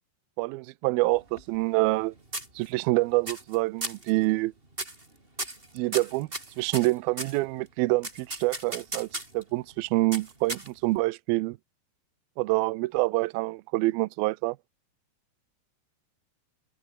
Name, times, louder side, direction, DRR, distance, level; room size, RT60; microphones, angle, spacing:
voice 1, 0.4-2.1 2.6-4.5 5.7-6.3 6.6-9.1 9.3-11.6 12.4-14.6, right 21 dB, 80° right, 2.3 m, -26 dB
sound 1, 1.1-2.0 2.3-2.9 3.3-3.6 3.8-4.1 4.7-5.1 5.4-7.4 8.0-9.4 10.1-11.0, right 2 dB, 15° right, 4.7 m, -36 dB
open air
omnidirectional pair, 4.8 m